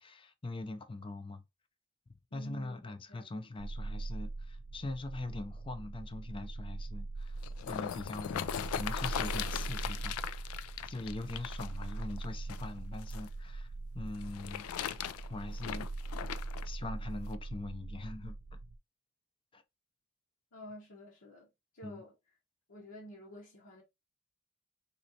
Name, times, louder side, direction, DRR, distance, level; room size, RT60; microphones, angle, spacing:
voice 1, 0.0-1.4 2.3-15.9 16.6-18.4 19.5-19.6 21.8-22.0, left 2 dB, 25° left, 0.4 m, -42 dB
voice 2, 2.3-3.5 20.5-21.5 21.7-22.1 22.7-23.8, equal, 65° left, 0.9 m, -50 dB
sound 1, 3.6-18.8, right 2 dB, 80° right, 0.6 m, -41 dB
sound 2, 7.2-13.3 14.1-16.7 17.3-17.4, left 9 dB, 85° left, 0.3 m, -39 dB
4.1 x 3.0 x 2.7 m
head